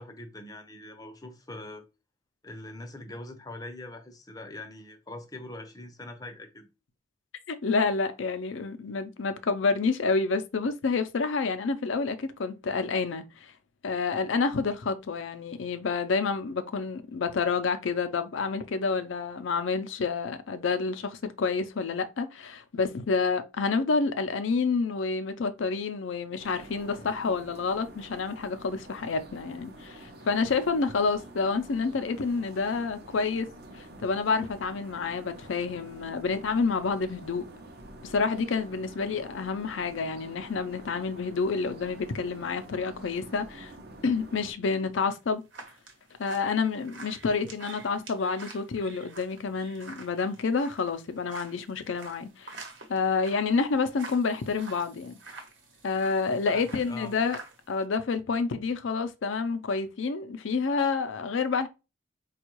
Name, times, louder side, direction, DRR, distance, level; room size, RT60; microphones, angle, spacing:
voice 1, 0.0-1.8 2.4-6.7 26.8-27.1 56.5-57.2, left 2 dB, 20° left, 0.5 m, -43 dB
voice 2, 7.5-13.5 13.8-33.5 33.8-37.5 38.0-43.7 44.0-45.4 46.2-52.5 52.9-55.2 55.8-57.4 57.7-61.7, left 4 dB, 80° left, 0.5 m, -29 dB
sound 1, 26.4-44.5, right 1 dB, 50° right, 0.6 m, -48 dB
sound 2, 44.7-57.8, right 3 dB, 70° right, 1.0 m, -48 dB
4.4 x 2.3 x 3.0 m
head